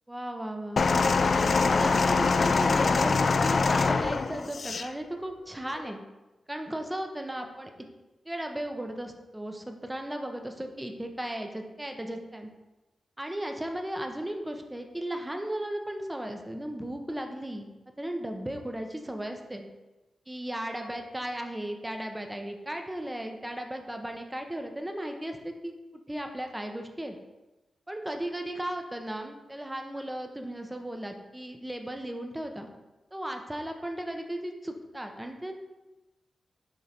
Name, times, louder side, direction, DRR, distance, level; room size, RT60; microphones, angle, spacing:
voice 1, 0.1-0.8 1.3-6.0 6.5-7.7 8.2-12.5 13.2-17.7 18.0-19.6 20.3-27.1 27.9-32.7 33.1-35.5, right 1 dB, 10° right, 4 dB, 0.9 m, -36 dB
sound 1, 0.8-4.9 5.8-5.9, left 4 dB, 55° left, 0.3 m, -24 dB
6.8 x 3.8 x 4.4 m, 1.1 s
cardioid pair, 80°, 0 cm